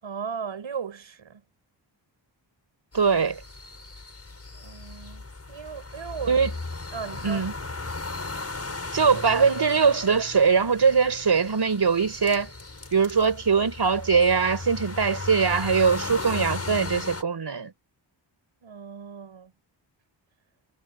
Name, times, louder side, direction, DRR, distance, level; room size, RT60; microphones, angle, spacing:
voice 1, 0.0-1.4 4.5-6.4 6.9-7.4 18.6-19.5, right 6 dB, 80° right, 6.8 m, -37 dB
sound 1, 2.9-17.2, left 3 dB, 30° left, 6.4 m, -36 dB
voice 2, 2.9-3.4 6.3-6.5 7.2-7.5 8.9-12.5 12.9-17.7, right 5 dB, 60° right, 5.2 m, -22 dB
wide cardioid pair, 90°, 46 cm